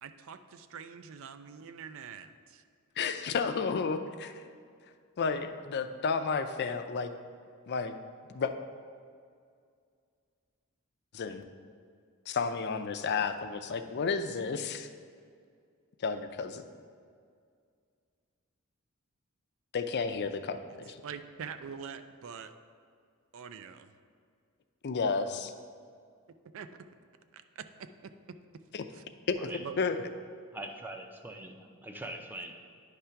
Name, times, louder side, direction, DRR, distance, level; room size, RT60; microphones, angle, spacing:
voice 1, 0.0-2.6 21.0-22.5 23.3-23.9 26.5-26.7 27.3-27.6 28.0-28.1 28.9-29.0 29.6-29.8, right 7 dB, 65° right, 10 dB, 0.4 m, -44 dB
voice 2, 3.0-4.4 5.2-7.1 7.7-7.9 8.3-8.5 11.1-11.5 12.3-14.9 16.0-16.6 19.7-20.6 20.9-21.0 24.8-25.5 28.7-28.8 29.3-29.5 29.8-30.0, left 5 dB, 50° left, 8 dB, 0.4 m, -32 dB
voice 3, 30.5-32.6, right 1 dB, 10° right, 3 dB, 0.5 m, -42 dB
9.7 x 3.3 x 5.7 m, 2.2 s
head